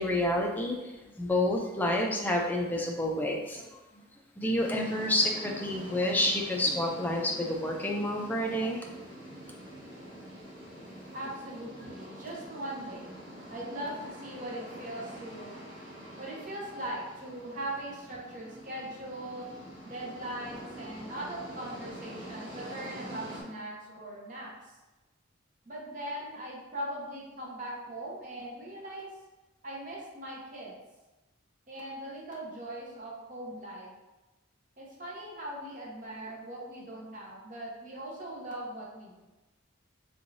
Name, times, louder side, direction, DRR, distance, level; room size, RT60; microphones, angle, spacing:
voice 1, 0.0-3.8 4.4-8.9, left 1 dB, 10° left, 0 dB, 0.3 m, -29 dB
sound 1, 4.6-23.4, right 1 dB, 60° right, 1.3 m, -45 dB
voice 2, 11.1-13.2 13.5-15.6 16.2-19.5 19.9-24.8 25.7-29.1 29.6-30.7 31.7-33.9 34.8-39.2, right 1 dB, 40° right, -4 dB, 0.8 m, -40 dB
3.5 x 3.2 x 2.6 m, 1.1 s
head